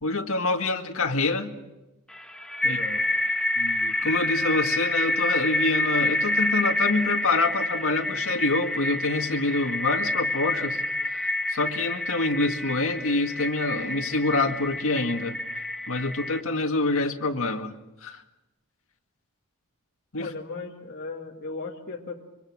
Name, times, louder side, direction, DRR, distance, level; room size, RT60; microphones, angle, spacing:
voice 1, 0.0-1.5 2.6-2.8 3.6-10.8 11.5-15.4 15.9-17.7 18.0-18.2 20.1-20.3, left 3 dB, 65° left, 4 dB, 2.0 m, -26 dB
sound 1, 2.1-16.4, left 1 dB, 5° left, 1.3 m, -28 dB
voice 2, 2.6-3.0 20.2-22.2, left 3 dB, 45° left, -2 dB, 2.2 m, -37 dB
25.5 x 24.5 x 6.3 m, 0.99 s
head